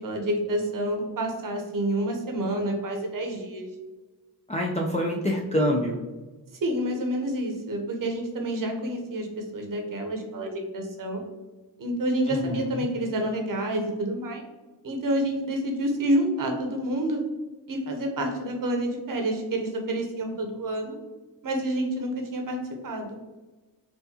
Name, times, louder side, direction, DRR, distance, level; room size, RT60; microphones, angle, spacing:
voice 1, 0.0-3.7 6.6-11.2 11.8-14.4 14.8-17.2 17.7-21.0 21.4-22.6 22.8-23.2, right 1 dB, 50° right, 3 dB, 1.0 m, -28 dB
voice 2, 4.5-6.0 12.3-12.9, equal, 15° left, -2 dB, 0.5 m, -26 dB
4.5 x 2.6 x 2.8 m, 1.2 s
cardioid pair, 75°, 43 cm